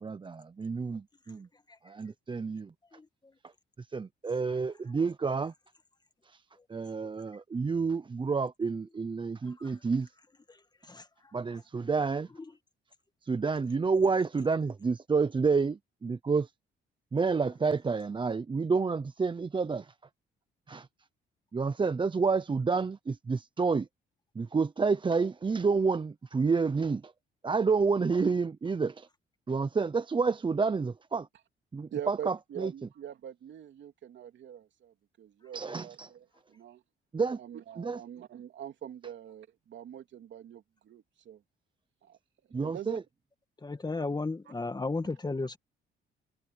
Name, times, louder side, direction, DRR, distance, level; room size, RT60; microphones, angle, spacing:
voice 1, 0.0-1.5 1.8-2.7 3.8-5.5 6.2-6.4 6.7-10.1 11.3-12.3 13.2-16.5 17.1-19.9 20.7-20.9 21.5-23.9 24.3-27.1 27.4-29.1 29.5-31.3 31.7-32.7 35.5-36.1 37.1-37.4 37.8-38.0 42.5-43.0, right 4 dB, 25° right, 0.7 m, -29 dB
voice 2, 10.5-11.3 43.6-45.6, left 3 dB, 20° left, 1.9 m, -35 dB
voice 3, 31.9-36.2 36.5-36.8 37.4-41.4 42.0-42.2 42.6-43.0, right 10 dB, 70° right, 3.2 m, -43 dB
cardioid pair, 90°, 20 cm